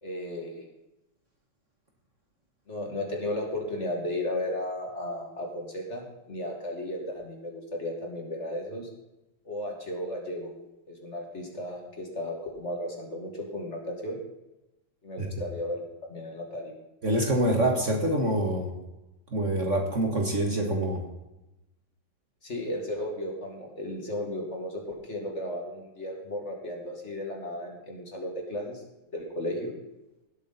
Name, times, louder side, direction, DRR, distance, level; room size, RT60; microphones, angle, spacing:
voice 1, 0.0-0.7 2.7-8.9 9.5-10.5 10.9-14.2 15.0-16.7 22.4-28.8 29.1-29.7, left 1 dB, 35° left, 0 dB, 2.3 m, -34 dB
voice 2, 17.0-18.7 19.3-21.0, right 1 dB, 40° right, 2 dB, 1.7 m, -25 dB
17.5 x 8.3 x 4.1 m, 0.97 s
omnidirectional pair, 2.1 m